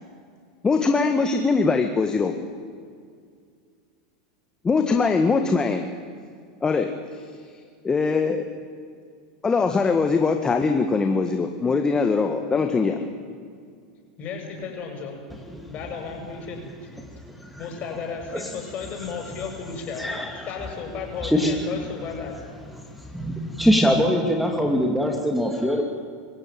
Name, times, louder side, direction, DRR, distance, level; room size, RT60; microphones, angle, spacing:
voice 1, 0.6-2.3 4.6-5.9 6.6-7.3 7.8-8.5 9.4-13.0, left 4 dB, 20° left, 5 dB, 1.7 m, -22 dB
voice 2, 14.2-16.6 17.6-20.2 20.5-22.4, left 5 dB, 40° left, 2 dB, 7.7 m, -34 dB
voice 3, 15.3-15.7 17.0-17.7 18.3-18.5 19.1-19.2 20.0-20.4 21.2-21.6 22.7-25.8, equal, ahead, 2 dB, 2.6 m, -24 dB
25.5 x 16.0 x 9.2 m, 2.1 s
hypercardioid pair, 110°, 4 cm